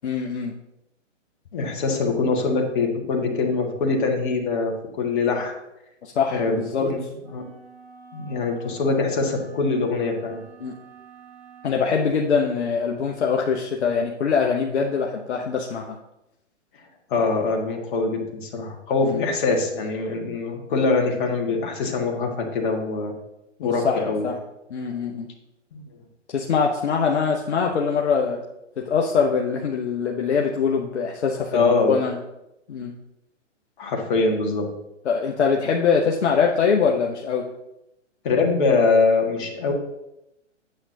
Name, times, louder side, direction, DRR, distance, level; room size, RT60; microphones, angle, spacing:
voice 1, 0.0-0.5 6.0-6.9 10.6-10.8 11.6-16.0 19.0-19.2 23.6-24.4 24.7-25.3 26.3-28.4 28.8-32.2 32.7-33.0 35.0-37.5, left 6 dB, 65° left, 0 dB, 0.9 m, -23 dB
voice 2, 1.5-5.5 6.3-7.0 7.3-7.4 8.1-10.4 17.1-23.1 23.6-24.2 25.7-25.8 31.5-32.0 33.8-34.7 38.2-39.7, left 3 dB, 40° left, 1 dB, 1.8 m, -23 dB
sound 1, 7.2-11.8, right 5 dB, 20° right, 1.8 m, -48 dB
8.7 x 7.5 x 2.7 m, 0.89 s
figure-of-eight pair, 130°, 37 cm